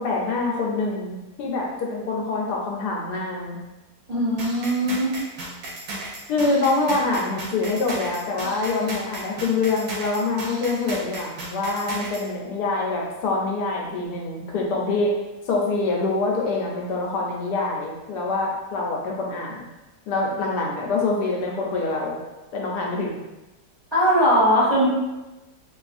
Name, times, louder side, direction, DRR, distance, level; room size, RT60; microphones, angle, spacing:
voice 1, 0.0-3.6 6.3-15.1 15.5-19.6 20.1-22.2 22.5-23.2, left 3 dB, 75° left, -2 dB, 1.2 m, -25 dB
voice 2, 4.1-5.1 23.9-24.9, equal, 40° right, -10 dB, 0.6 m, -20 dB
sound 1, 4.4-12.3, right 2 dB, 90° right, 1.4 m, -35 dB
3.1 x 2.4 x 2.4 m, 1.1 s
omnidirectional pair, 1.8 m